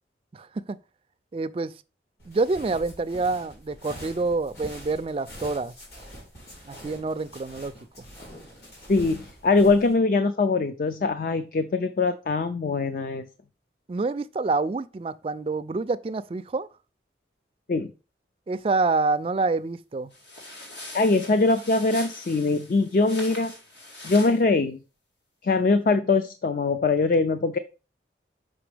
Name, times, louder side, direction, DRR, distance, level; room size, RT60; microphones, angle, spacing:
voice 1, 0.3-0.8 1.3-1.7 2.3-5.7 6.7-7.7 13.9-16.7 18.5-20.1, right 3 dB, 30° right, 0.3 m, -27 dB
sound 1, 2.2-9.9, equal, 65° left, 3.3 m, -44 dB
voice 2, 8.9-13.3 17.7-17.9 20.9-23.5 24.0-24.8 25.4-27.6, left 3 dB, 50° left, 0.4 m, -22 dB
sound 2, 20.1-24.4, left 1 dB, 80° left, 2.4 m, -42 dB
6.0 x 5.1 x 3.3 m
head